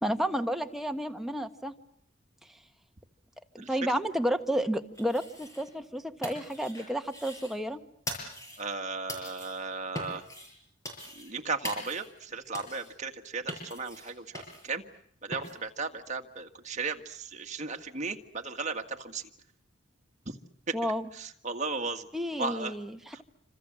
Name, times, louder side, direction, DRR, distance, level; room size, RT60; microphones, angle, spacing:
voice 1, 0.0-1.7 3.5-7.8 20.7-21.1 22.1-23.2, equal, ahead, 5 dB, 1.3 m, -31 dB
sound 1, 4.9-5.8 6.0-7.6 8.1-8.7 9.1-9.6 10.0-10.5 10.8-11.4 11.6-12.2 12.5-12.9 13.5-14.7 15.3-15.6, equal, 15° left, 7.0 m, -42 dB
voice 2, 8.6-10.2 11.2-14.8 15.2-19.2 20.7-20.8 21.2-22.1 22.4-22.7 23.1-23.2, right 4 dB, 35° right, 5 dB, 1.9 m, -35 dB
27.5 x 26.5 x 7.5 m, 0.68 s
head